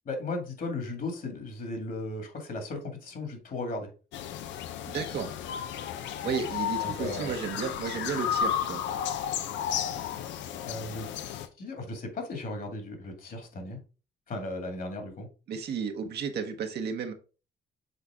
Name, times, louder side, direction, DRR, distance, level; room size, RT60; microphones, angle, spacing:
voice 1, 0.1-3.9 6.8-7.4 10.6-11.1 11.6-13.8 14.3-15.3, left 2 dB, 50° left, 4 dB, 2.2 m, -36 dB
sound 1, 4.1-11.5, left 9 dB, 90° left, 0.7 m, -33 dB
voice 2, 4.9-5.3 6.2-8.8 15.5-17.1, right 6 dB, 65° right, 5 dB, 1.2 m, -33 dB
6.6 x 4.0 x 3.6 m, 0.34 s
cardioid pair, 115°, 18 cm